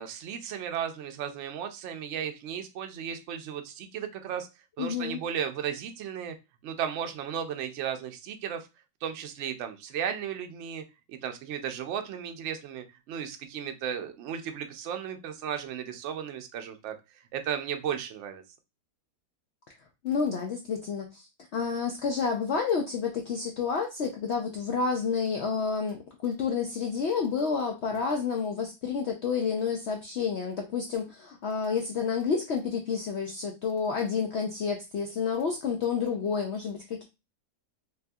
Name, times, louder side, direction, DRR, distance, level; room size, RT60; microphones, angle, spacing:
voice 1, 0.0-4.5 4.8-6.3 6.6-8.7 9.0-10.8 11.1-16.9 17.3-18.4, right 8 dB, 65° right, 7 dB, 0.7 m, -35 dB
voice 2, 4.8-5.2 20.0-37.0, left 5 dB, 75° left, 2 dB, 0.6 m, -30 dB
3.3 x 2.6 x 2.3 m, 0.26 s
omnidirectional pair, 1.7 m